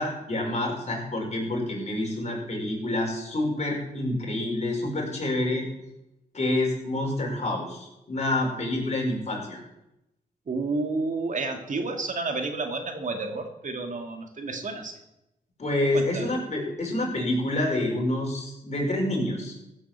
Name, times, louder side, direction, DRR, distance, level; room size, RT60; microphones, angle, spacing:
voice 1, 0.0-5.7 6.3-9.6 15.6-19.5, left 1 dB, 45° left, -1 dB, 5.5 m, -28 dB
voice 2, 10.5-14.9 15.9-16.3, right 3 dB, 55° right, 4 dB, 2.2 m, -30 dB
15.5 x 8.0 x 7.4 m, 0.90 s
cardioid pair, 75°, 16 cm